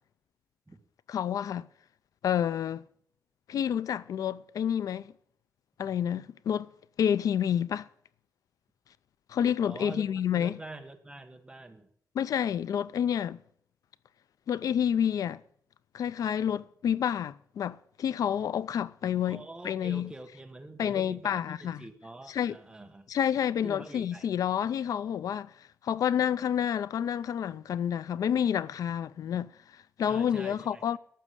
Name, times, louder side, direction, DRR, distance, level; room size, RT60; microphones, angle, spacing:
voice 1, 1.1-1.7 2.2-2.8 3.5-5.1 5.8-6.7 7.0-7.9 9.3-10.6 12.2-13.4 14.5-15.4 15.9-20.1 20.8-21.8 22.3-22.6 23.1-31.0, left 9 dB, 85° left, 0.4 m, -29 dB
voice 2, 9.6-11.9 19.3-23.1 23.6-24.3 30.1-31.0, right 2 dB, 15° right, 1.4 m, -45 dB
12.5 x 7.3 x 8.1 m
wide cardioid pair, 150°, 6 cm